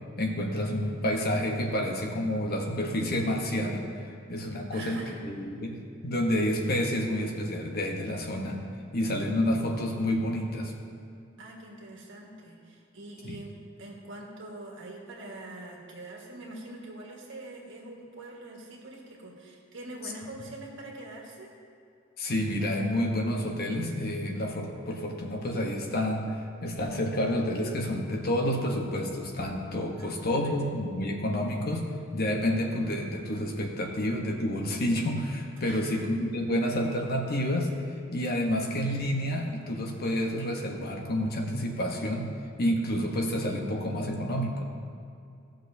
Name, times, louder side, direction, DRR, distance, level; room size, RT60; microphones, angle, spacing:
voice 1, 0.2-3.8 4.3-5.7 6.0-8.6 8.9-10.7 13.2-13.4 22.2-26.4 26.6-31.8 32.1-37.7 38.1-42.3 42.6-44.7, left 1 dB, 50° left, 1 dB, 1.0 m, -29 dB
voice 2, 4.7-5.2 11.4-13.5 13.8-21.5 30.0-30.7 35.6-35.9, right 2 dB, 60° right, -2 dB, 1.6 m, -44 dB
15.0 x 6.3 x 2.7 m, 2.4 s
head